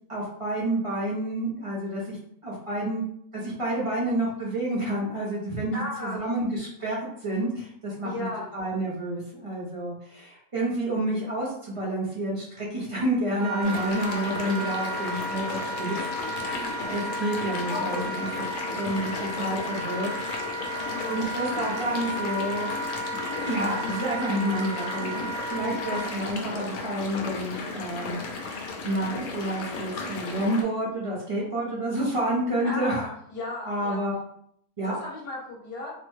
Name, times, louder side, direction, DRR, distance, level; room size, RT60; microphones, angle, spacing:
voice 1, 0.1-2.2 2.4-3.0 3.3-8.3 8.5-16.0 16.4-18.4 18.7-20.1 20.4-20.6 21.0-22.9 23.5-28.6 28.8-33.0 33.7-34.2 34.8-35.0, right 1 dB, 40° right, -6 dB, 0.4 m, -29 dB
voice 2, 5.7-6.2 8.0-8.5 17.6-18.2 20.8-21.1 32.6-34.0 34.8-35.9, left 2 dB, 45° left, -5 dB, 1.3 m, -35 dB
Wind instrument woodwind instrument, 13.4-26.1, right 1 dB, 80° right, 1.1 m, -34 dB
sound 1, 13.6-30.6, left 4 dB, 70° left, 1.0 m, -35 dB
3.0 x 2.1 x 3.0 m, 0.67 s
omnidirectional pair, 1.6 m